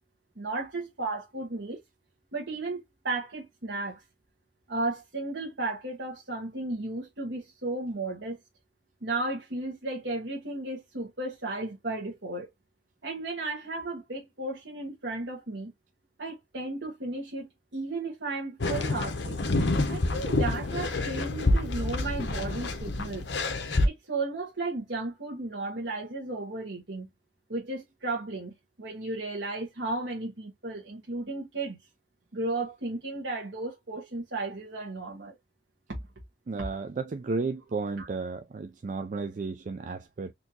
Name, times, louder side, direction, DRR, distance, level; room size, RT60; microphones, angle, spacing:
voice 1, 0.4-1.8 2.3-4.0 4.7-8.4 9.0-12.5 13.0-15.7 16.2-19.4 19.9-23.2 23.8-27.1 27.5-28.5 28.8-31.8 32.3-35.3 35.9-36.0 38.0-38.1, right 2 dB, 80° right, 1.4 m, -34 dB
sound 1, 18.6-23.9, left 2 dB, 80° left, 0.9 m, -27 dB
voice 2, 36.5-40.3, right 4 dB, 45° right, 0.4 m, -33 dB
4.3 x 2.8 x 2.8 m
head